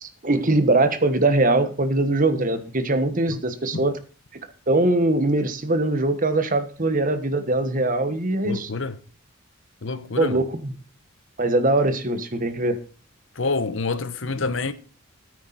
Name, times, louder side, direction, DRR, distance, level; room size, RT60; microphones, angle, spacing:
voice 1, 0.0-4.0 4.7-8.7 10.2-10.7 11.4-12.8, right 2 dB, 40° right, 1.4 m, -22 dB
voice 2, 8.4-9.0 9.8-10.3 13.4-14.7, left 3 dB, 60° left, 1.0 m, -27 dB
13.5 x 9.4 x 4.2 m
head